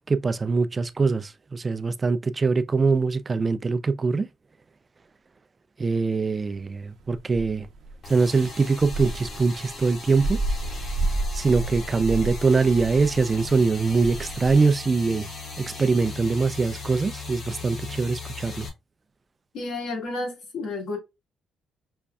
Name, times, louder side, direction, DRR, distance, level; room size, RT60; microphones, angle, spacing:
voice 1, 0.1-4.3 5.8-7.7 8.1-10.4 11.3-15.3 15.6-18.7, right 4 dB, 30° right, 0.3 m, -23 dB
sound 1, 6.4-14.5, right 2 dB, 65° right, 0.7 m, -31 dB
sound 2, 8.0-18.7, left 4 dB, 60° left, 1.6 m, -38 dB
voice 2, 19.5-21.0, left 2 dB, 80° left, 1.8 m, -31 dB
5.1 x 2.3 x 2.2 m
cardioid pair, 90°, 0 cm